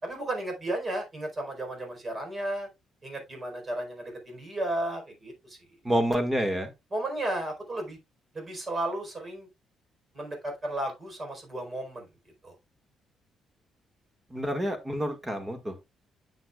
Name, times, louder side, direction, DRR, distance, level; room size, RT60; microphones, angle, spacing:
voice 1, 0.0-2.7 3.0-5.6 6.9-8.0 8.3-9.5 10.1-12.1 12.4-12.6, right 1 dB, 35° right, 4.4 m, -34 dB
voice 2, 5.8-6.7 14.3-15.8, equal, 15° right, 1.9 m, -28 dB
9.8 x 6.8 x 2.4 m
cardioid pair, 90°, 0 cm